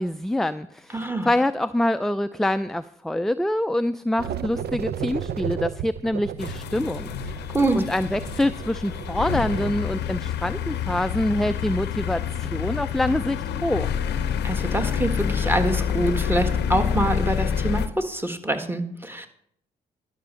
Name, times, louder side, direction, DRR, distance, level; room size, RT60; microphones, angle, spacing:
voice 1, 0.0-7.4 7.7-13.9, left 1 dB, ahead, 11 dB, 0.4 m, -25 dB
voice 2, 0.9-1.3 7.5-7.8 14.4-19.3, right 1 dB, 15° right, 6 dB, 1.6 m, -25 dB
sound 1, 4.2-9.7, right 9 dB, 75° right, 0.6 m, -34 dB
sound 2, 6.4-17.9, left 8 dB, 85° left, 0.6 m, -27 dB
11.5 x 6.1 x 6.9 m, 0.69 s
supercardioid pair, 60°, 17 cm